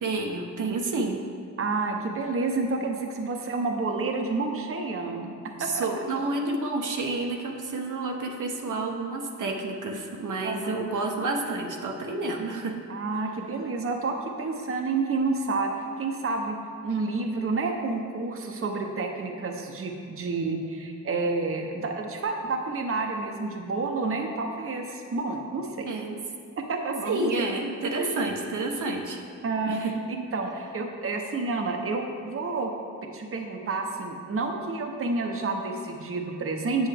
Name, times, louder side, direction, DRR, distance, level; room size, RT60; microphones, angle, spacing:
voice 1, 0.0-1.2 5.6-12.8 25.8-26.2 27.0-29.2 29.7-29.9, right 3 dB, 75° right, 1 dB, 0.8 m, -29 dB
voice 2, 1.6-5.9 10.4-10.7 12.9-15.7 16.0-16.6 16.8-25.9 26.6-27.5 28.0-28.1 29.4-32.7 33.1-36.9, right 3 dB, 45° right, 3 dB, 0.8 m, -29 dB
7.8 x 7.1 x 3.3 m, 2.5 s
cardioid pair, 75°, 31 cm